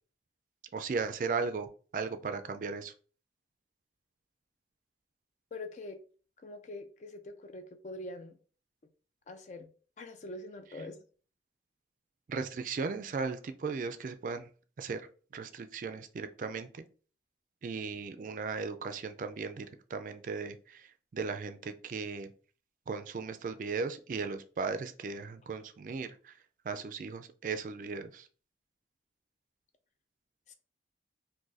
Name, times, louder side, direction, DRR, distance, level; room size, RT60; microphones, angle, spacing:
voice 1, 0.7-2.9 12.3-14.5 14.8-15.1 15.3-16.8 17.6-20.8 21.1-22.3 22.9-26.3 26.7-28.3, right 4 dB, 45° right, 8 dB, 0.3 m, -37 dB
voice 2, 5.5-6.0 6.4-8.4 9.3-9.7 10.0-11.0 30.5-30.6, left 2 dB, 40° left, 7 dB, 0.4 m, -44 dB
2.6 x 2.5 x 3.9 m, 0.40 s
head